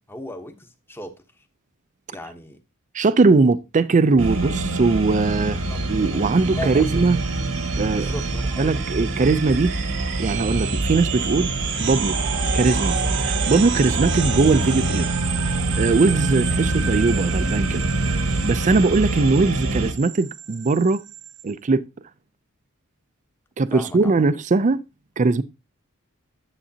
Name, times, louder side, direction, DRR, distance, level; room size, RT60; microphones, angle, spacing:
voice 1, 0.1-1.2 2.1-2.6 5.7-5.8 6.1-7.0 7.9-8.7 23.7-24.2, left 2 dB, 10° left, 1.0 m, -36 dB
voice 2, 2.9-5.6 5.9-7.2 7.7-8.1 8.6-9.7 10.2-11.5 11.8-12.2 12.5-15.1 15.8-17.9 18.4-21.0 21.4-21.8 23.6-24.8 25.2-25.4, right 3 dB, 35° right, 0.4 m, -20 dB
sound 1, 4.2-19.9, right 2 dB, 80° right, 1.3 m, -25 dB
sound 2, 5.2-21.4, right 8 dB, 55° right, 0.8 m, -32 dB
10.0 x 7.6 x 2.8 m
head